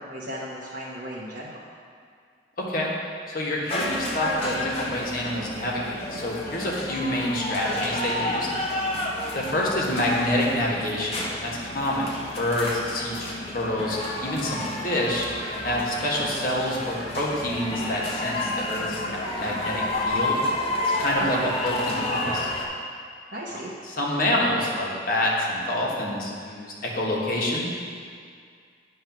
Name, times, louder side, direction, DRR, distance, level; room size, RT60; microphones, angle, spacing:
voice 1, 0.0-1.7 21.2-21.5 23.3-23.7, right 1 dB, 55° right, -8 dB, 1.0 m, -34 dB
voice 2, 3.3-8.5 9.3-12.1 12.4-15.3 15.6-19.0 19.4-20.4 21.0-22.5 23.9-27.7, left 1 dB, 50° left, -4 dB, 1.3 m, -27 dB
sound 1, 3.7-22.6, left 1 dB, 35° left, 0.9 m, -30 dB
9.5 x 3.2 x 5.9 m, 2.2 s
head